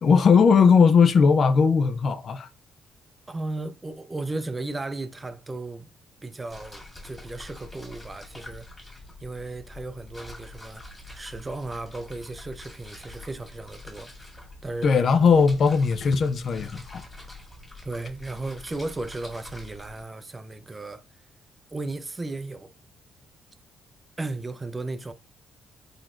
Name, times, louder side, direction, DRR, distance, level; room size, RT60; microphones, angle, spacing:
voice 1, 0.0-2.5 14.8-17.0, left 5 dB, 55° left, 0.4 m, -18 dB
voice 2, 3.3-5.9 6.2-8.7 9.2-10.8 11.1-14.1 14.6-14.9 17.8-21.0 21.7-22.7 24.2-25.1, right 2 dB, 20° right, 0.4 m, -35 dB
sound 1, 6.5-20.0, left 2 dB, 15° left, 1.7 m, -45 dB
3.9 x 3.1 x 2.4 m
cardioid pair, 90°, 0 cm